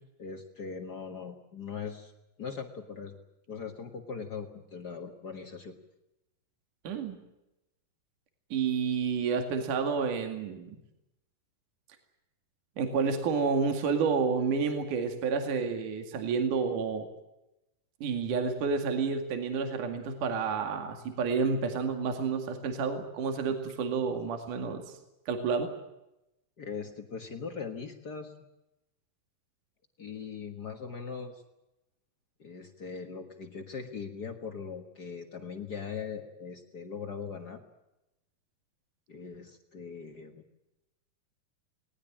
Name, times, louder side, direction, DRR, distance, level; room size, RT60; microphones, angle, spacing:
voice 1, 0.2-2.1 2.4-3.2 3.5-5.7 26.6-28.3 30.0-31.4 32.4-37.6 39.1-40.4, left 5 dB, 90° left, 4 dB, 0.8 m, -40 dB
voice 2, 6.8-7.2 8.5-10.8 12.8-17.1 18.0-24.8 25.3-25.7, right 5 dB, 60° right, 5 dB, 3.6 m, -30 dB
20.5 x 19.5 x 8.8 m, 0.92 s
omnidirectional pair, 4.5 m